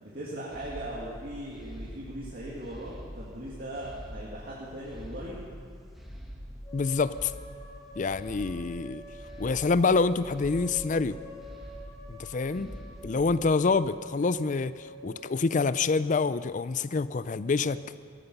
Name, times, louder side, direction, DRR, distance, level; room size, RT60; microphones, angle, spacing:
voice 1, 0.0-5.4 12.5-12.8, right 1 dB, 50° right, -6 dB, 2.2 m, -39 dB
sound 1, 0.5-13.6, equal, ahead, 1.8 m, -45 dB
sound 2, 6.6-15.6, left 1 dB, 20° left, 3.2 m, -47 dB
voice 2, 6.7-7.3 8.0-9.0 9.4-11.2 12.1-12.7 13.0-17.8, left 4 dB, 40° left, 15 dB, 0.4 m, -27 dB
17.5 x 14.5 x 5.4 m, 2.2 s
head